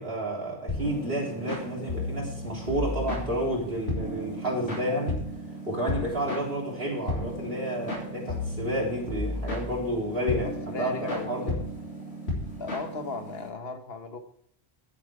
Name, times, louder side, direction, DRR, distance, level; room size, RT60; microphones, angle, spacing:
voice 1, 0.0-5.2 5.7-11.6, equal, 65° right, -3 dB, 3.8 m, -30 dB
sound 1, 0.7-13.5, left 1 dB, 85° left, 3.3 m, -34 dB
voice 2, 10.4-11.3 12.6-14.2, left 4 dB, 65° left, 7 dB, 1.3 m, -36 dB
10.0 x 8.6 x 4.7 m, 0.67 s
omnidirectional pair, 1.1 m